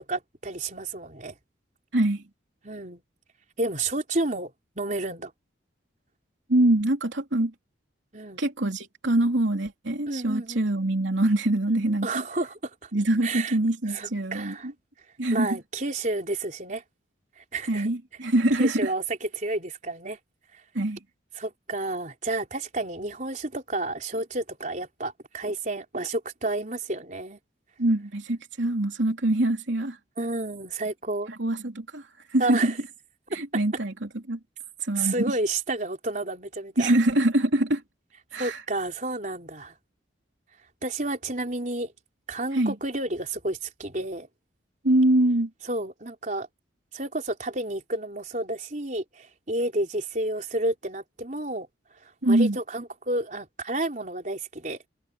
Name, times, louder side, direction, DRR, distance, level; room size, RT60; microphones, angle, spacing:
voice 1, 0.1-1.4 2.6-3.0 3.6-5.3 8.1-8.4 10.1-10.7 12.0-12.9 13.2-13.6 13.9-14.7 15.3-16.8 17.4-17.9 18.6-20.2 21.4-27.4 30.2-31.3 32.4-32.8 34.9-36.9 38.3-39.7 40.8-41.9 42.3-44.3 45.6-46.5 46.9-51.7 52.0-54.8, right 2 dB, 40° right, 4.2 m, -31 dB
voice 2, 1.9-2.2 6.5-7.5 8.4-12.1 12.9-14.5 15.2-15.6 17.7-18.9 20.7-21.0 27.8-30.0 31.3-32.0 32.3-32.7 33.3-34.4 34.8-35.2 36.8-37.8 38.3-38.6 42.5-42.7 44.8-45.5 52.2-52.6, right 1 dB, 80° right, 3.0 m, -24 dB
head